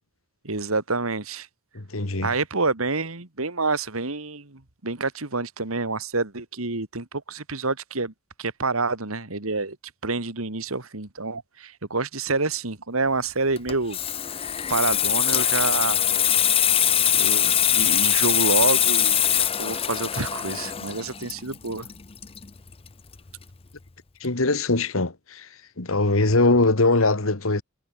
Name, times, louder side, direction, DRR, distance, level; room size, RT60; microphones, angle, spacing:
voice 1, 0.4-1.5 2.2-8.1 8.4-9.8 10.0-14.0 14.7-16.1 17.1-21.9, right 3 dB, 75° right, 2.5 m, -28 dB
voice 2, 1.7-2.3 24.2-25.5 25.8-27.6, left 2 dB, 70° left, 1.9 m, -22 dB
Water tap faucet / Sink (filling or washing), 13.6-22.9 23.2-23.4, left 10 dB, 25° left, 0.6 m, -22 dB
head